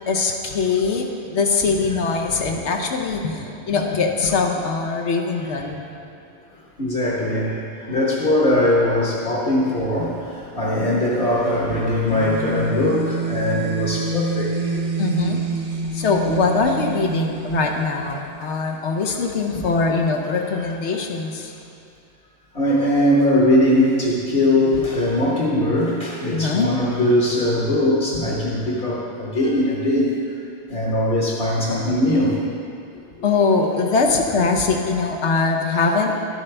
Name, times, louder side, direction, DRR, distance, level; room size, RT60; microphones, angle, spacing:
voice 1, 0.1-5.9 15.0-15.4 15.9-21.5 26.3-26.8 33.2-36.3, left 4 dB, 85° left, 2 dB, 1.2 m, -22 dB
voice 2, 6.8-14.5 19.5-19.7 22.5-30.2 30.7-32.4, left 1 dB, 55° left, -5 dB, 1.5 m, -20 dB
sound 1, 12.1-18.7, right 3 dB, 45° right, 0.8 m, -27 dB
12.0 x 7.8 x 3.4 m, 2.5 s
omnidirectional pair, 1.1 m